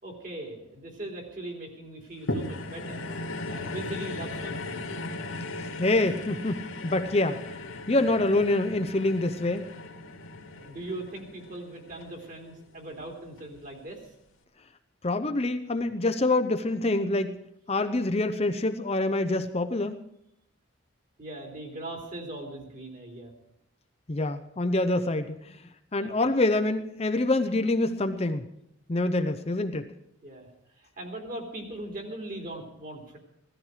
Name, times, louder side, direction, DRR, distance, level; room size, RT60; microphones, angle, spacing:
voice 1, 0.0-3.0 3.5-4.9 10.5-14.1 21.2-23.3 26.0-26.1 30.2-30.5 30.7-33.2, right 1 dB, 40° right, 1 dB, 3.2 m, -40 dB
sound 1, 2.3-12.8 13.4-13.5, left 2 dB, 80° left, 2.2 m, -37 dB
voice 2, 5.8-7.6 7.9-9.7 15.0-17.4 17.7-20.0 24.1-25.6 25.9-28.4 28.9-29.9, left 2 dB, 30° left, 7 dB, 0.6 m, -26 dB
16.0 x 14.0 x 4.9 m, 0.76 s
head